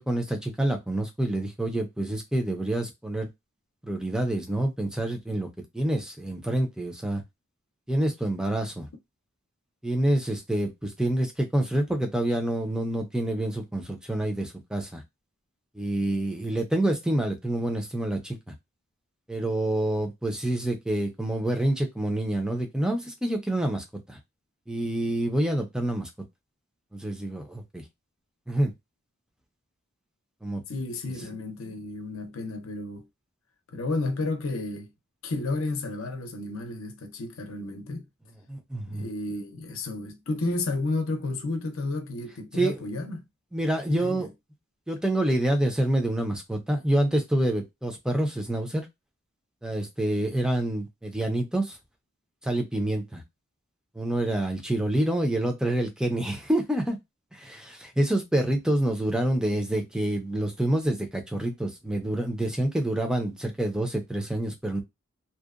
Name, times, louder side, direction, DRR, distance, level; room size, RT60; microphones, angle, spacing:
voice 1, 0.0-3.3 3.8-5.5 5.7-7.2 7.9-8.9 9.8-15.0 15.7-18.5 19.3-24.2 24.7-26.1 26.9-27.8 28.5-28.7 30.4-30.6 38.5-39.1 42.6-42.8 43.5-44.3 44.9-48.9 49.6-51.8 52.4-53.2 54.0-57.0 57.3-64.8, right 1 dB, 5° right, 0.5 m, -27 dB
voice 2, 30.7-33.1 33.7-34.9 35.2-38.1 38.9-43.3 43.9-44.3, left 2 dB, 75° left, 0.6 m, -32 dB
2.7 x 2.1 x 2.4 m
head